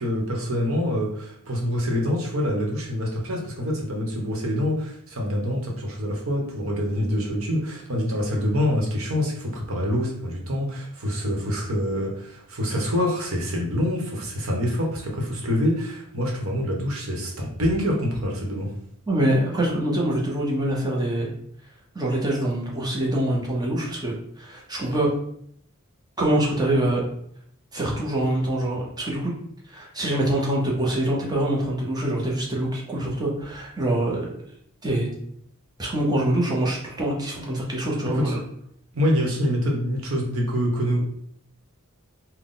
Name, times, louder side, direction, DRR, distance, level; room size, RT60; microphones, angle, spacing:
voice 1, 0.0-18.7 38.1-38.3 38.9-41.1, equal, 65° right, -1 dB, 1.0 m, -26 dB
voice 2, 19.1-21.3 21.9-25.1 26.2-27.0 27.7-29.3 29.7-34.3 34.8-35.1 35.8-38.4, right 1 dB, 20° right, -3 dB, 0.8 m, -24 dB
4.0 x 2.2 x 3.8 m, 0.68 s
head